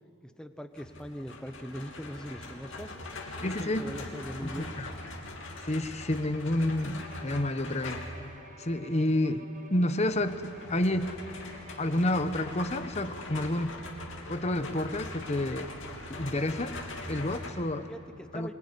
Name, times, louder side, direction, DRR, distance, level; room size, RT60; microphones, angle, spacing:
voice 1, 0.2-2.9 3.4-4.7 17.9-18.5, equal, 5° left, 8 dB, 1.0 m, -41 dB
sound 1, 0.7-8.3 10.0-17.5, left 2 dB, 60° left, 3.2 m, -42 dB
voice 2, 3.4-3.9 4.4-4.9 5.6-8.0 8.6-9.4 9.7-11.2 11.8-13.8 14.3-15.7 16.1-16.7 17.1-17.9 18.3-18.5, left 1 dB, 30° left, 10 dB, 1.0 m, -29 dB
Bowed string instrument, 7.0-12.4, equal, 35° right, 1.7 m, -52 dB
25.5 x 21.5 x 9.9 m, 2.9 s
head